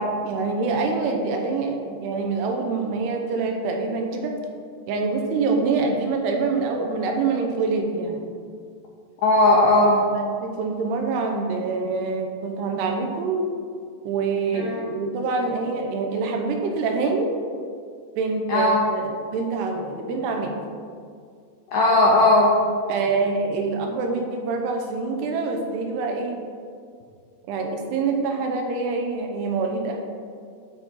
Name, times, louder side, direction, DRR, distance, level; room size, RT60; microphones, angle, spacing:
voice 1, 0.2-4.4 4.9-8.2 10.4-13.4 14.0-17.3 18.2-20.6 22.9-26.4 27.5-30.0, right 4 dB, 80° right, 2 dB, 2.7 m, -25 dB
voice 2, 9.2-10.0 14.5-14.8 18.5-18.8 21.7-22.5, left 2 dB, 75° left, -4 dB, 1.9 m, -17 dB
12.0 x 4.1 x 4.6 m, 2.2 s
omnidirectional pair, 5.1 m